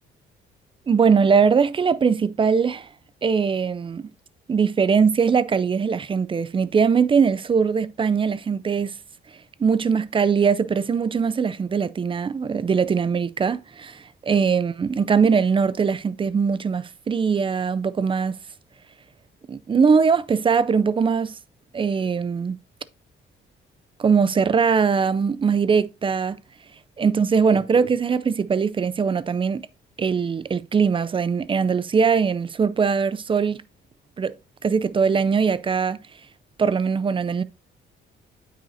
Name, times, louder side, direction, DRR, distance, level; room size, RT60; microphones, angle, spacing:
voice 1, 0.9-2.9 3.2-4.0 4.5-8.9 9.6-18.4 19.5-21.4 21.7-22.6 24.0-26.4 27.0-29.6 30.0-33.6 34.2-34.3 34.6-36.0 36.6-37.4, right 6 dB, 25° right, 0.4 m, -21 dB
8.9 x 5.6 x 2.7 m
cardioid pair, 90°, 20 cm